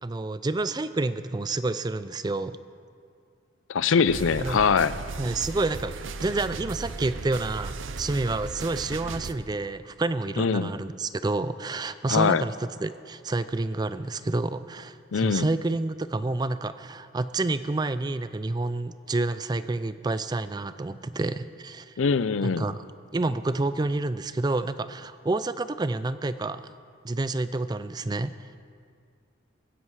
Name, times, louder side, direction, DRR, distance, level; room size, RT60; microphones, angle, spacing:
voice 1, 0.0-2.6 4.4-4.6 5.2-5.9 6.2-21.9 22.4-22.8 23.1-26.7 27.0-28.6, right 2 dB, 20° right, 13 dB, 0.4 m, -29 dB
voice 2, 3.7-4.9 10.4-10.7 12.1-12.4 15.1-15.5 22.0-22.6, left 5 dB, 85° left, 16 dB, 0.5 m, -23 dB
sound 1, 4.1-9.3, right 4 dB, 80° right, 0.7 m, -36 dB
16.5 x 15.0 x 4.8 m, 2.2 s
head